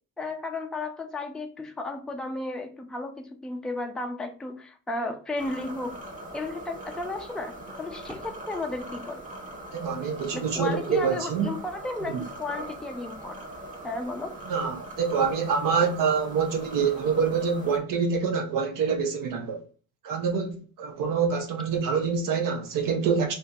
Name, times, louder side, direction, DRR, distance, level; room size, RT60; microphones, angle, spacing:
voice 1, 0.2-6.0 6.3-9.2 10.3-13.4 13.8-14.4, left 2 dB, ahead, 0.4 m, -34 dB
sound 1, 5.4-17.8, right 1 dB, 20° right, 1.1 m, -41 dB
voice 2, 9.7-11.5 14.5-19.6 20.0-23.3, right 6 dB, 60° right, 0.8 m, -26 dB
2.8 x 2.8 x 3.5 m
cardioid pair, 100°, 37 cm